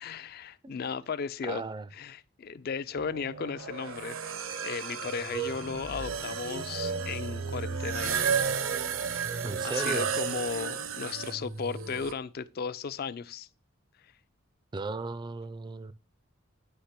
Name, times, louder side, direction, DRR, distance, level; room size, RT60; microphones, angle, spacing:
voice 1, 0.0-1.6 1.9-4.2 4.6-8.3 9.1-13.5, left 5 dB, 50° left, 0.4 m, -36 dB
voice 2, 1.4-1.9 9.4-10.1 14.7-15.9, right 3 dB, 20° right, 0.3 m, -35 dB
sound 1, 3.0-12.1, right 6 dB, 80° right, 0.7 m, -33 dB
9.7 x 3.3 x 5.7 m
head